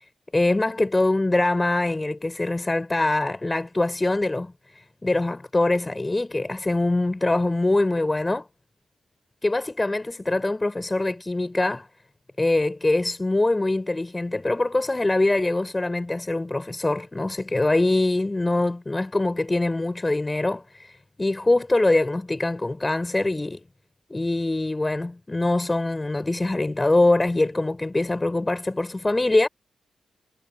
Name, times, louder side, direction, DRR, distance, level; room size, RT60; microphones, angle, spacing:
voice 1, 0.3-4.5 5.0-8.5 9.4-11.9 12.4-23.6 24.1-29.5, left 2 dB, 15° left, 5.4 m, -23 dB
wide cardioid pair, 125°, 0 cm